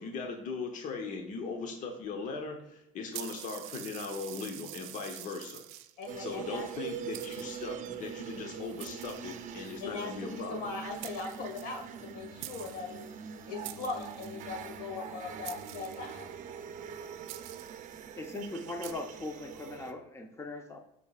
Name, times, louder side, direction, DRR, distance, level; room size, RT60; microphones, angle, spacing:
voice 1, 0.0-5.8 6.2-10.7, left 4 dB, 45° left, 3 dB, 1.0 m, -39 dB
sound 1, 3.1-6.1 6.7-6.8 7.1-7.9 8.8-9.8 10.7-10.8 11.0-12.1 12.4-12.9 13.6-14.5 15.4-16.3 17.3-17.9 18.8-18.9, right 15 dB, 85° right, 0.5 m, -46 dB
voice 2, 6.0-6.7 9.8-13.0 13.5-16.3, left 4 dB, 85° left, 3 dB, 1.9 m, -39 dB
sound 2, 6.1-19.9, right 7 dB, 45° right, 0.7 m, -43 dB
voice 3, 18.2-20.8, left 2 dB, 15° left, 4 dB, 0.9 m, -40 dB
13.5 x 4.9 x 2.4 m, 0.83 s
supercardioid pair, 115°, 18 cm